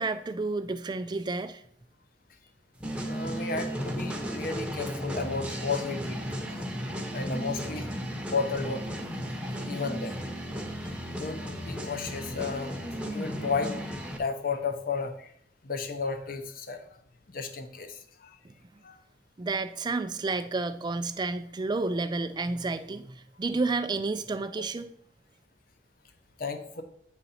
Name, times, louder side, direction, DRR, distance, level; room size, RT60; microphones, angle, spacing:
voice 1, 0.0-1.6 18.4-18.5 19.4-24.9, right 3 dB, 25° right, 11 dB, 0.4 m, -31 dB
sound 1, 2.8-14.2, equal, 5° right, 0.8 m, -35 dB
voice 2, 3.0-6.2 7.1-7.9 8.2-8.8 9.6-10.2 10.8-10.9 11.2-12.8 13.1-15.3 15.6-16.8 17.3-18.4 18.8-19.0 26.4-26.8, left 4 dB, 50° left, 8 dB, 0.7 m, -33 dB
8.8 x 4.0 x 4.2 m, 0.67 s
head